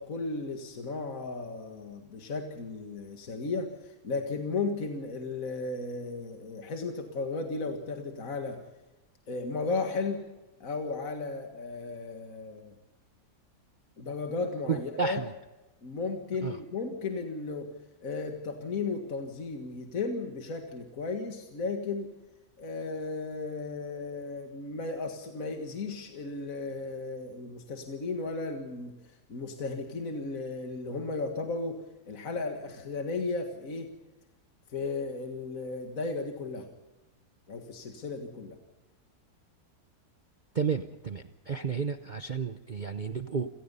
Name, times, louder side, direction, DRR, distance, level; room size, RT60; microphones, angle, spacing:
voice 1, 0.0-8.6 9.3-10.3 10.6-12.7 14.0-15.2 15.8-17.7 18.0-22.1 22.6-28.9 29.3-33.9 34.7-36.7 37.5-38.6, left 3 dB, 55° left, 3 dB, 2.2 m, -35 dB
voice 2, 14.7-15.3 16.4-16.5 40.5-43.5, right 6 dB, 45° right, 9 dB, 0.6 m, -32 dB
28.5 x 17.5 x 5.5 m, 1.1 s
omnidirectional pair, 1.8 m